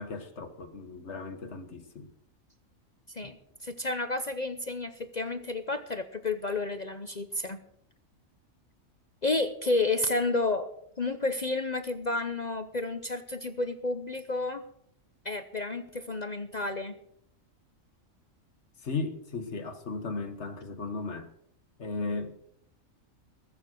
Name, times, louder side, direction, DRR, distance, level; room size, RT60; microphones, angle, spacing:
voice 1, 0.0-2.1 18.8-21.3 21.8-22.3, left 3 dB, 55° left, 1.6 m, -36 dB
voice 2, 3.1-7.6 9.2-10.7 11.0-14.6 15.2-16.9, left 2 dB, 40° left, 0.8 m, -31 dB
21.0 x 7.2 x 6.3 m
omnidirectional pair, 1.4 m